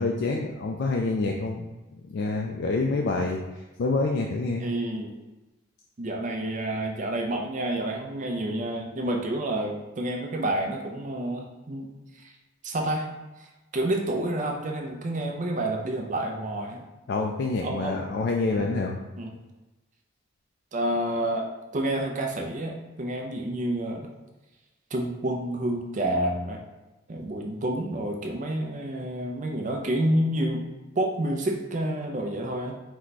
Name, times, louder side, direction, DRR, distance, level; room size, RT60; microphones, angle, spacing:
voice 1, 0.0-1.7 2.1-3.4 3.8-4.7 17.1-19.0, left 3 dB, 50° left, 0 dB, 0.3 m, -27 dB
voice 2, 4.6-5.1 6.0-11.9 12.2-12.3 12.6-13.1 13.4-13.5 13.7-16.8 17.6-18.1 18.5-18.7 19.2-19.3 20.7-24.1 24.9-26.6 27.1-30.6 31.0-32.8, right 1 dB, 35° right, 2 dB, 0.4 m, -29 dB
4.5 x 2.2 x 4.0 m, 1.1 s
head